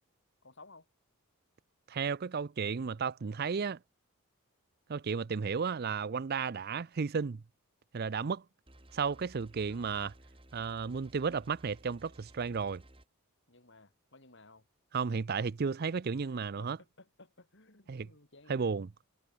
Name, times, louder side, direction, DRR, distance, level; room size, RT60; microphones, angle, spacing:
voice 1, 0.4-0.9 9.7-10.0 13.5-14.6 16.2-18.9, left 2 dB, 55° left, 4.1 m, -58 dB
voice 2, 1.9-3.8 4.9-7.4 7.9-8.4 8.9-10.1 10.5-12.8 14.9-16.8 17.9-18.1 18.5-18.9, right 5 dB, 45° right, 0.4 m, -33 dB
sound 1, 8.7-13.1, right 1 dB, 25° right, 2.1 m, -57 dB
head